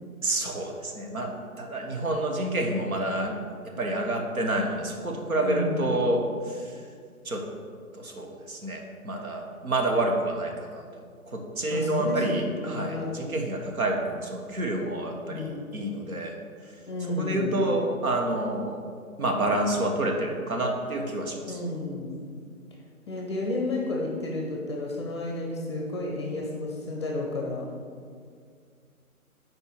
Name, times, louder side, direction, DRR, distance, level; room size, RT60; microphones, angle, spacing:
voice 1, 0.2-3.4 3.6-6.8 7.2-7.5 7.9-16.4 17.2-18.8 19.2-21.6, right 1 dB, 75° right, 2 dB, 1.3 m, -28 dB
voice 2, 5.4-5.9 11.7-13.1 15.2-15.7 16.9-17.8 21.5-22.3 23.1-27.7, left 2 dB, 20° left, -1 dB, 0.6 m, -31 dB
5.4 x 4.6 x 6.0 m, 2.1 s
figure-of-eight pair, 145°, 43 cm